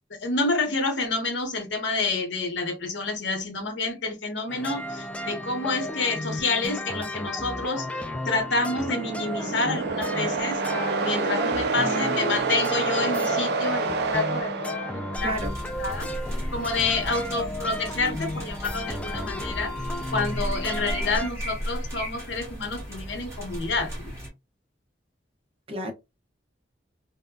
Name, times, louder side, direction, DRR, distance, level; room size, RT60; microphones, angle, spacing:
voice 1, 0.2-7.9 8.2-15.5 15.8-16.1 16.5-19.7 20.1-24.1, left 3 dB, 75° left, 0.9 m, -28 dB
sound 1, 4.5-21.3, left 1 dB, 5° left, 0.3 m, -34 dB
sound 2, 8.4-15.4, right 4 dB, 60° right, 0.4 m, -28 dB
voice 2, 11.8-12.3 15.2-15.5 25.7-25.9, equal, 30° right, 0.7 m, -32 dB
sound 3, 15.1-24.3, equal, 15° right, 1.6 m, -35 dB
3.5 x 2.1 x 2.2 m
head